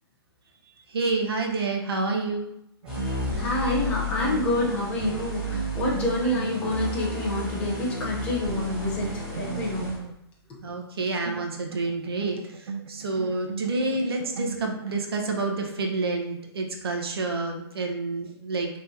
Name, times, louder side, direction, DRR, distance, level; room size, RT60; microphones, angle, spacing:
voice 1, 0.9-2.5 2.9-3.3 10.6-18.7, right 3 dB, 65° right, 2 dB, 1.1 m, -29 dB
sound 1, 2.8-8.0 8.6-10.2 11.3-15.1, right 6 dB, 85° right, 0.4 m, -38 dB
sound 2, 2.9-10.0, left 1 dB, 5° right, 1.5 m, -33 dB
voice 2, 3.3-10.1 10.5-10.7, left 1 dB, 10° left, -4 dB, 0.7 m, -28 dB
5.8 x 3.2 x 2.8 m, 0.80 s
hypercardioid pair, 170°, 14 cm